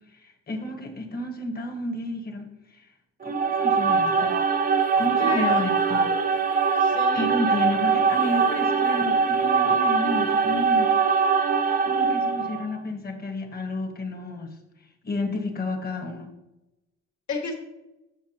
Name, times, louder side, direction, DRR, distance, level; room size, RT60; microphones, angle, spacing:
voice 1, 0.1-2.8 3.2-4.4 5.0-6.1 7.1-10.9 11.8-14.5 15.0-16.3, left 1 dB, 30° left, 3 dB, 1.4 m, -31 dB
sound 1, 3.2-12.7, right 5 dB, 30° right, 0.5 m, -22 dB
sound 2, 4.1-6.9 7.6-9.6 9.9-11.0, right 4 dB, 85° right, 1.1 m, -40 dB
voice 2, 5.2-5.7 6.8-7.6 17.3-17.5, left 4 dB, 65° left, -1 dB, 1.9 m, -32 dB
8.1 x 6.0 x 2.9 m, 0.97 s
cardioid pair, 90°, 30 cm